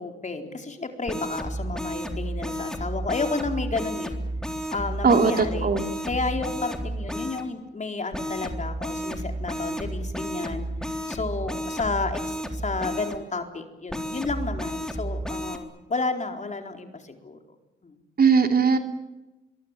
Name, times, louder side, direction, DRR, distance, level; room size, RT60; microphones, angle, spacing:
voice 1, 0.0-4.2 4.7-5.7 6.0-10.7 11.1-17.4 17.8-17.9, left 3 dB, 35° left, 5 dB, 4.2 m, -31 dB
sound 1, 1.1-7.4 8.1-13.2 13.9-15.6, right 1 dB, 5° left, 3.8 m, -32 dB
voice 2, 5.0-5.9 18.2-18.8, right 5 dB, 50° right, 6 dB, 3.1 m, -19 dB
24.0 x 23.0 x 9.2 m, 1.0 s
cardioid pair, 75°, 20 cm